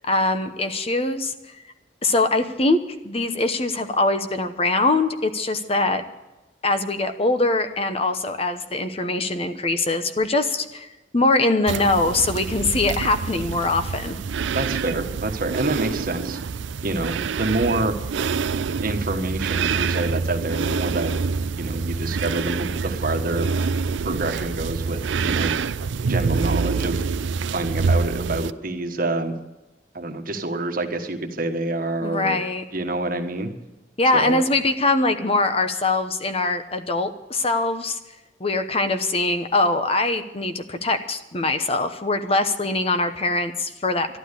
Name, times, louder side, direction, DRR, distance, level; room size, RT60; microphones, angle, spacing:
voice 1, 0.1-1.3 2.0-6.0 6.6-10.9 11.1-14.2 32.0-32.6 34.0-38.0 38.4-44.2, left 2 dB, 30° left, 9 dB, 0.9 m, -22 dB
sound 1, 11.7-28.5, right 5 dB, 80° right, 0.5 m, -26 dB
voice 2, 14.5-16.4 16.8-18.0 18.8-21.2 21.6-23.5 24.0-25.5 26.0-27.0 27.5-29.3 29.9-32.4 32.7-33.5 34.1-34.4, right 2 dB, 50° right, 6 dB, 1.4 m, -27 dB
12.5 x 12.0 x 8.3 m, 1.0 s
head